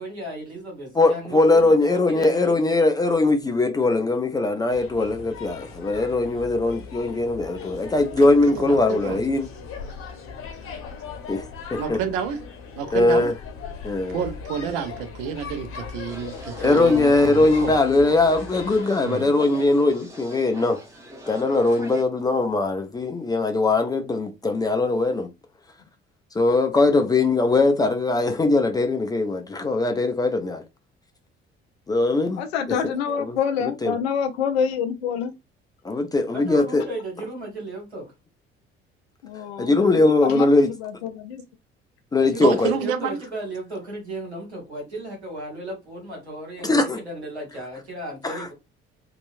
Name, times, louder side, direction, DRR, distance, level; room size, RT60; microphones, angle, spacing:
voice 1, 0.0-2.6 36.3-38.1 42.3-48.5, right 1 dB, 85° right, 1.1 m, -35 dB
voice 2, 0.9-9.5 11.3-11.4 11.7-12.0 12.9-13.3 13.8-14.2 16.6-20.8 21.3-25.3 26.3-30.6 31.9-32.4 33.2-33.9 35.8-36.8 39.6-40.7 42.1-42.7 46.6-47.0 48.2-48.5, left 2 dB, 15° left, 0.4 m, -20 dB
sound 1, 4.7-18.8, left 6 dB, 40° left, 0.8 m, -39 dB
voice 3, 8.2-9.2 11.8-12.4 12.8-13.3 14.1-17.8 19.0-19.3 42.4-43.2, right 7 dB, 60° right, 0.6 m, -29 dB
sound 2, 16.0-22.0, equal, 10° right, 0.9 m, -42 dB
voice 4, 32.4-35.3 39.2-41.4, left 7 dB, 70° left, 0.5 m, -27 dB
2.8 x 2.2 x 2.5 m
figure-of-eight pair, 50°, 32 cm